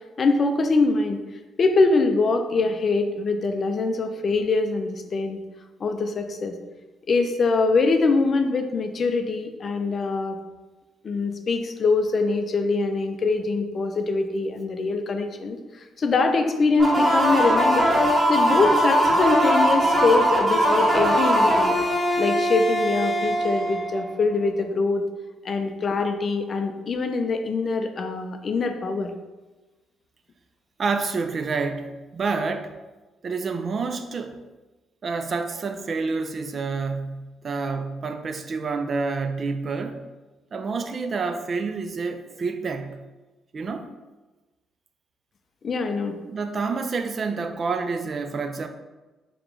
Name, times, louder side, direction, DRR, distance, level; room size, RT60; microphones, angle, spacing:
voice 1, 0.2-1.2 1.6-5.4 5.8-6.6 7.1-10.4 11.0-17.9 18.3-21.8 22.2-25.0 25.4-29.1 45.6-46.2, left 3 dB, 45° left, 6 dB, 0.4 m, -23 dB
sound 1, 16.8-24.4, equal, 10° right, 1.0 m, -21 dB
voice 2, 30.8-32.7 33.2-34.4 35.0-40.0 40.5-43.0 43.5-43.9 46.3-48.7, right 4 dB, 45° right, 8 dB, 0.3 m, -28 dB
3.3 x 2.9 x 3.7 m, 1.2 s
cardioid pair, 90°, 0 cm